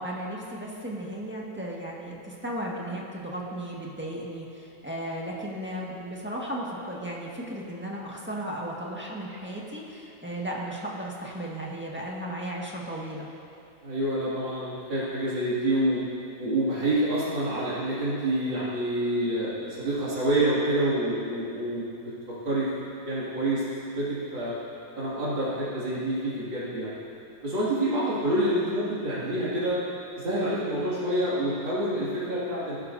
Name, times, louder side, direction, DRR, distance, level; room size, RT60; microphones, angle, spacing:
voice 1, 0.0-13.3, right 1 dB, 5° right, -4 dB, 1.5 m, -35 dB
voice 2, 13.8-16.0 16.4-21.9 22.4-22.7 23.0-23.6 23.9-24.5 25.0-27.0 27.4-29.8 30.2-32.8, right 1 dB, 80° right, -10 dB, 3.2 m, -27 dB
21.0 x 11.5 x 2.7 m, 2.7 s
omnidirectional pair, 2.1 m